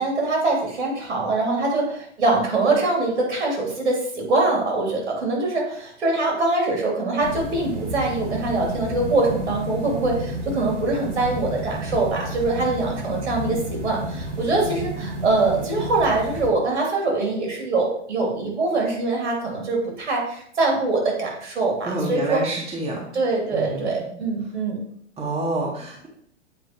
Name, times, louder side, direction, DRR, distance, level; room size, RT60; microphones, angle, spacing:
voice 1, 0.0-22.5 23.1-24.8, right 3 dB, 70° right, -1 dB, 2.6 m, -23 dB
sound 1, 7.2-16.5, right 1 dB, 85° right, 1.2 m, -31 dB
voice 2, 21.8-23.1 23.5-23.9 25.2-26.1, right 2 dB, 15° right, -2 dB, 1.4 m, -27 dB
7.8 x 4.8 x 2.9 m, 0.64 s
figure-of-eight pair, 105°, 35 cm